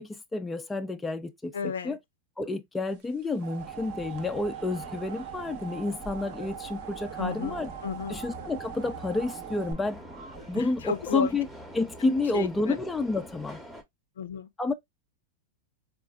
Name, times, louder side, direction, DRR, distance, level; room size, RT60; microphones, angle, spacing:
voice 1, 0.0-1.5 1.8-2.0 2.4-7.7 8.1-10.0 10.5-11.5 11.7-13.6 14.6-14.7, left 3 dB, 10° left, 0.4 m, -30 dB
voice 2, 1.5-2.0 7.2-8.2 10.5-11.3 12.3-12.8 14.2-14.5, left 6 dB, 90° left, 0.5 m, -32 dB
sound 1, 3.0-9.7, right 11 dB, 55° right, 0.7 m, -42 dB
Subway metro underground, 3.6-13.8, equal, 5° right, 0.8 m, -46 dB
sound 2, 4.4-10.8, right 6 dB, 80° right, 1.2 m, -50 dB
4.0 x 2.4 x 2.3 m
hypercardioid pair, 125°, 0 cm